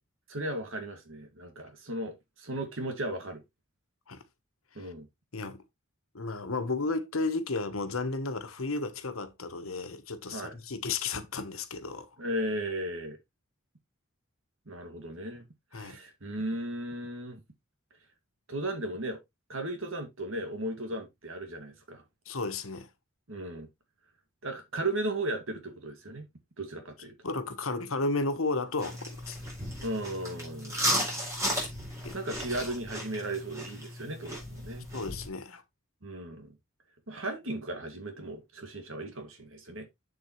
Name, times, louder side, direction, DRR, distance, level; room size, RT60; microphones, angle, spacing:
voice 1, 0.3-3.4 4.8-5.1 10.3-10.6 12.2-13.2 14.7-15.4 15.7-17.4 18.5-19.2 19.5-22.0 23.3-23.7 24.4-26.3 26.6-27.1 29.8-30.9 32.1-34.9 36.0-36.6 37.1-39.9, right 1 dB, 70° right, 2.2 m, -36 dB
voice 2, 5.3-5.6 6.1-12.1 15.7-16.0 22.3-22.9 27.2-29.4 32.0-32.2 34.9-35.6, left 3 dB, 90° left, 1.3 m, -33 dB
sound 1, 28.8-35.3, equal, 15° right, 4.2 m, -35 dB
7.5 x 7.2 x 3.1 m
head